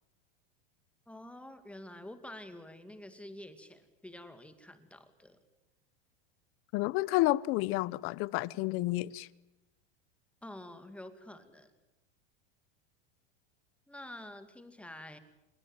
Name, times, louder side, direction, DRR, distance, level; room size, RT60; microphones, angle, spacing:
voice 1, 1.1-5.4 10.4-11.7 13.9-15.2, left 1 dB, 5° left, 2.2 m, -48 dB
voice 2, 6.7-9.3, left 18 dB, 45° left, 0.8 m, -30 dB
27.0 x 22.0 x 8.9 m
supercardioid pair, 140°, 30 cm